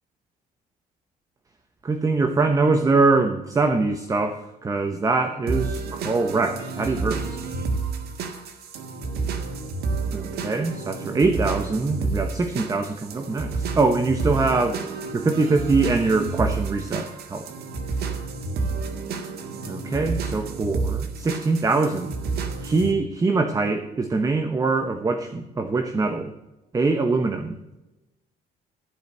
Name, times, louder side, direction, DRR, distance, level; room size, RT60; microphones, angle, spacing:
voice 1, 1.8-7.4 10.1-14.8 15.1-17.5 19.7-22.1 22.6-26.3 26.7-27.6, right 3 dB, 20° right, 7 dB, 0.9 m, -23 dB
sound 1, 5.5-22.9, right 4 dB, 70° right, 1.7 m, -30 dB
13.5 x 5.2 x 7.7 m, 0.98 s
cardioid pair, 110°, 17 cm